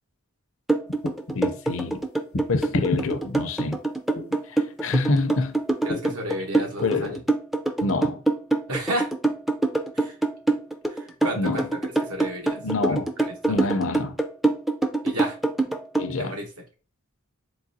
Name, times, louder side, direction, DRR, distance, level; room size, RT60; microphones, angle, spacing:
sound 1, 0.7-16.1, right 2 dB, ahead, 0.3 m, -24 dB
sound 2, 0.9-1.4 2.3-3.0 4.2-4.4 5.9-6.2, left 1 dB, 85° left, 0.9 m, -29 dB
voice 1, 1.3-2.0 2.5-3.8 4.5-5.6 6.8-7.2 7.8-8.2 11.4-11.6 12.6-13.1 13.5-14.2 16.0-16.4, left 3 dB, 60° left, 0.5 m, -26 dB
voice 2, 5.8-7.1 8.7-9.1 9.9-10.2 10.9-11.7 12.1-12.6 12.9-13.3 13.6-13.8 15.0-15.4 16.2-16.5, right 1 dB, 90° right, 1.1 m, -32 dB
3.8 x 3.1 x 2.7 m
head